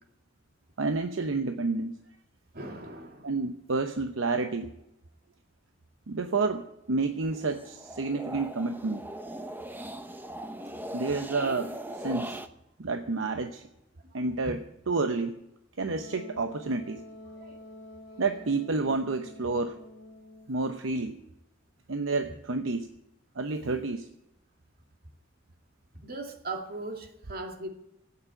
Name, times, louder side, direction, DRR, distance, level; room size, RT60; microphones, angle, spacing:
voice 1, 0.8-1.9 3.2-4.7 6.1-6.6 6.9-9.0 10.9-12.4 12.8-13.6 14.1-15.3 15.8-17.0 18.2-19.8 20.5-21.2 21.9-22.9 23.4-24.1, right 3 dB, 85° right, 7 dB, 0.8 m, -29 dB
voice 2, 2.5-3.3 14.0-14.5 17.4-17.6 26.0-27.7, right 2 dB, 50° right, 3 dB, 2.3 m, -39 dB
sound 1, 7.2-12.5, right 1 dB, 10° right, 0.8 m, -40 dB
Wind instrument woodwind instrument, 15.8-20.6, left 1 dB, 65° left, 1.9 m, -48 dB
13.5 x 8.7 x 9.1 m, 0.85 s
head